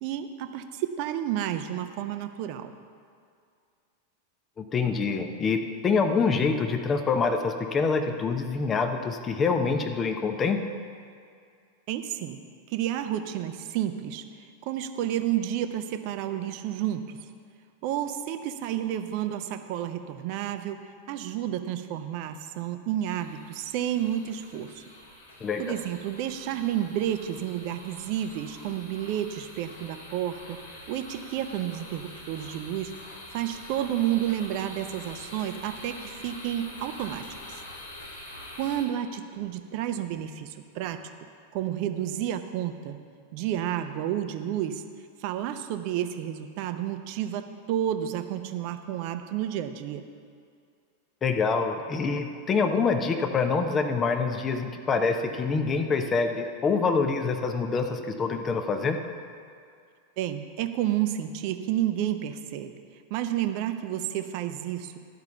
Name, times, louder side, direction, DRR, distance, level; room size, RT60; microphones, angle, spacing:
voice 1, 0.0-2.7 11.9-12.4 12.7-14.2 14.6-17.2 17.8-20.8 21.1-24.8 25.6-30.6 30.9-37.6 38.6-41.0 41.5-43.0 43.3-44.8 45.2-50.0 60.2-62.7 63.1-64.9, right 11 dB, 45° right, 8 dB, 0.7 m, -31 dB
voice 2, 4.6-10.6 25.4-25.8 51.2-59.0, left 4 dB, 25° left, 6 dB, 0.8 m, -26 dB
sound 1, 23.1-38.8, left 1 dB, 70° left, 2.1 m, -45 dB
12.0 x 5.8 x 6.9 m, 2.3 s
figure-of-eight pair, 90°, 0 cm